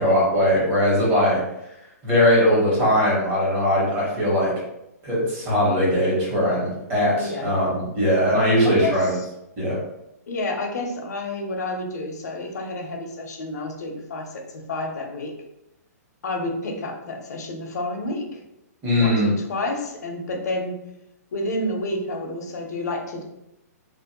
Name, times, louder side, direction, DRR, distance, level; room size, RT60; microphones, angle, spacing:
voice 1, 0.0-1.4 2.0-4.5 5.0-7.7 7.9-9.1 9.6-9.8 18.8-19.3, equal, 20° right, -6 dB, 1.1 m, -20 dB
voice 2, 7.2-7.5 8.6-9.3 10.3-15.4 16.2-18.4 19.0-20.8 21.3-23.2, left 2 dB, 75° left, 2 dB, 0.6 m, -30 dB
2.5 x 2.0 x 2.9 m, 0.87 s
hypercardioid pair, 150°, 9 cm